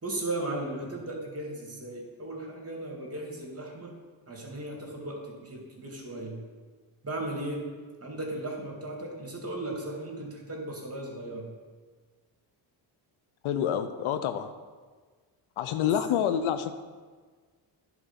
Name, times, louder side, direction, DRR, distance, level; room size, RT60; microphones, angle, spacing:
voice 1, 0.0-4.0 4.3-6.4 7.0-7.7 8.0-11.5 15.8-15.9, right 1 dB, 30° right, 0 dB, 2.6 m, -36 dB
voice 2, 13.4-14.5 15.6-16.7, left 9 dB, 75° left, 10 dB, 0.7 m, -27 dB
9.9 x 4.5 x 5.8 m, 1.5 s
supercardioid pair, 55°, 50 cm